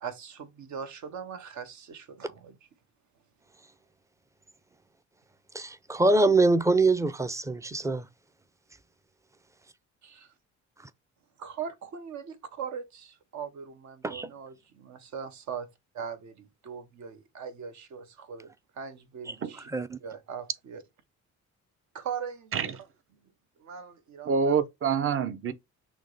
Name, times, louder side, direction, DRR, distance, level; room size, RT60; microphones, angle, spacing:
voice 1, 0.0-2.6 10.0-10.3 11.4-15.7 15.9-19.7 20.0-20.8 21.9-22.7 23.6-24.6, right 7 dB, 70° right, 1.0 m, -40 dB
voice 2, 5.5-8.1 14.0-14.3 19.7-20.0, right 2 dB, 10° right, 0.4 m, -24 dB
voice 3, 24.3-25.5, right 6 dB, 45° right, 0.7 m, -26 dB
6.1 x 2.2 x 3.9 m
cardioid pair, 90°, 30 cm